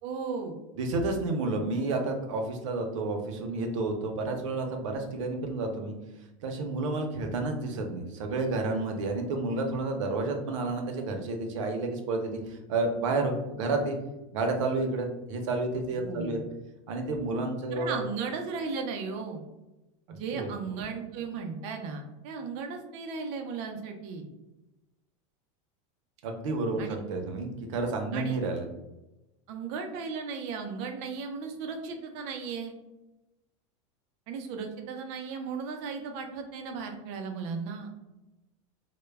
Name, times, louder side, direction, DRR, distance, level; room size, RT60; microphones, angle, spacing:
voice 1, 0.0-0.5 16.0-16.4 17.7-19.4 20.1-24.2 26.8-27.0 28.1-28.4 29.5-32.7 34.3-37.9, right 5 dB, 45° right, 4 dB, 0.4 m, -36 dB
voice 2, 0.8-5.9 6.4-14.0 14.3-16.4 16.9-18.0 20.1-20.5 26.2-28.7, right 3 dB, 90° right, 4 dB, 0.6 m, -30 dB
2.2 x 2.0 x 3.3 m, 0.99 s
supercardioid pair, 165°, 16 cm